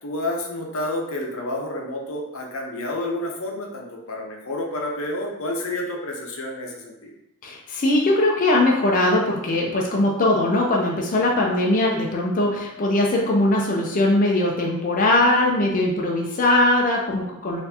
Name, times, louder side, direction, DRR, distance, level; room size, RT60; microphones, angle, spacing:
voice 1, 0.0-7.1, left 1 dB, 70° left, 0 dB, 0.7 m, -29 dB
voice 2, 7.4-17.6, left 1 dB, 40° left, -2 dB, 0.5 m, -20 dB
4.2 x 2.6 x 2.7 m, 0.87 s
head